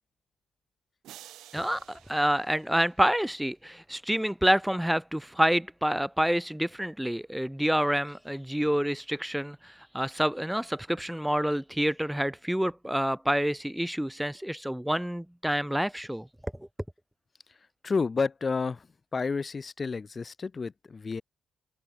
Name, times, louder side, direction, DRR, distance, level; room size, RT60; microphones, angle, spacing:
sound 1, 1.0-3.4, right 14 dB, 85° right, 2.0 m, -52 dB
voice 1, 1.5-16.5, equal, 5° right, 0.3 m, -28 dB
voice 2, 17.8-18.9 19.1-21.2, left 4 dB, 35° left, 1.0 m, -30 dB
cardioid pair, 90°, 0 cm